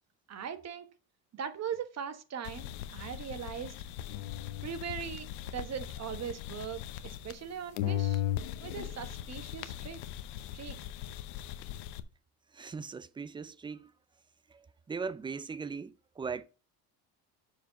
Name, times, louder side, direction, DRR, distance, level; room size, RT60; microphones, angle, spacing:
voice 1, 0.3-0.9 1.4-3.7 4.6-8.2 8.6-10.0 10.5-10.8, right 8 dB, 35° right, 1.2 m, -40 dB
sound 1, 2.4-7.5 7.8-12.0, left 13 dB, 90° left, 0.8 m, -38 dB
voice 2, 12.5-13.9 14.5-16.4, right 5 dB, 10° right, 0.4 m, -39 dB
7.3 x 4.7 x 5.8 m
supercardioid pair, 110°, 43 cm